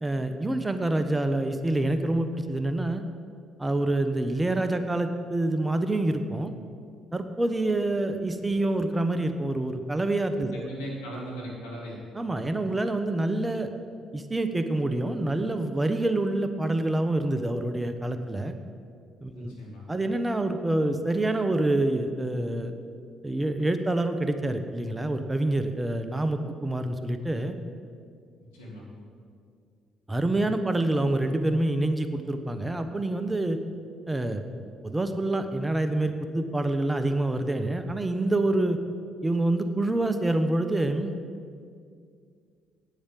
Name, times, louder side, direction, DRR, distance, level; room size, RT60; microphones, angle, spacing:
voice 1, 0.0-3.0 3.6-6.5 7.1-10.7 12.1-13.7 14.1-18.5 19.2-19.5 19.9-22.7 23.2-27.5 30.1-33.6 34.1-34.4 34.8-38.8 39.2-41.1, right 2 dB, 20° right, 8 dB, 1.0 m, -27 dB
voice 2, 10.5-12.0 19.4-19.8 28.5-28.9, equal, 90° left, -3 dB, 2.5 m, -38 dB
8.9 x 8.5 x 7.5 m, 2.2 s
hypercardioid pair, 50°, 0 cm